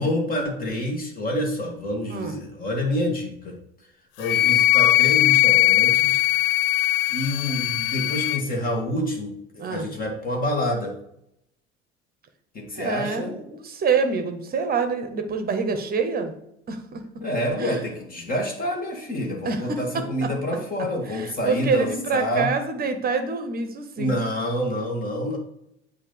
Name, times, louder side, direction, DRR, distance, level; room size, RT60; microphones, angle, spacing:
voice 1, 0.0-3.6 4.2-6.2 7.1-10.9 12.5-13.4 17.2-22.5 24.0-25.4, left 1 dB, 25° left, 1 dB, 1.6 m, -27 dB
voice 2, 2.1-2.4 9.6-9.9 12.8-16.3 16.7-17.0 17.6-17.8 19.4-20.3 21.1-24.2, right 5 dB, 25° right, 7 dB, 1.0 m, -26 dB
Wind instrument woodwind instrument, 4.2-8.4, left 17 dB, 55° left, 0.4 m, -20 dB
8.3 x 2.8 x 5.3 m, 0.79 s
figure-of-eight pair, 70°, 34 cm